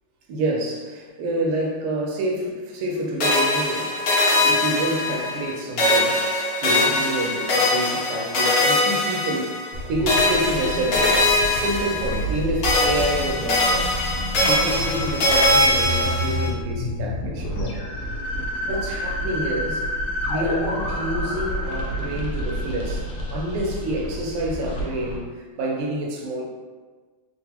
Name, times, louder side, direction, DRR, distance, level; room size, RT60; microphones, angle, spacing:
voice 1, 0.3-4.0 4.3-6.2 6.6-9.5 9.9-13.9 14.4-17.9 18.3-19.9 20.3-23.0 23.3-26.4, right 1 dB, 80° right, 0 dB, 1.5 m, -28 dB
sound 1, 3.2-5.5 5.8-9.8 10.1-12.4 12.6-16.5, left 1 dB, 55° left, 1.1 m, -21 dB
sound 2, 9.7-25.2, equal, 80° left, 1.6 m, -29 dB
3.8 x 2.4 x 2.8 m, 1.4 s
omnidirectional pair, 2.4 m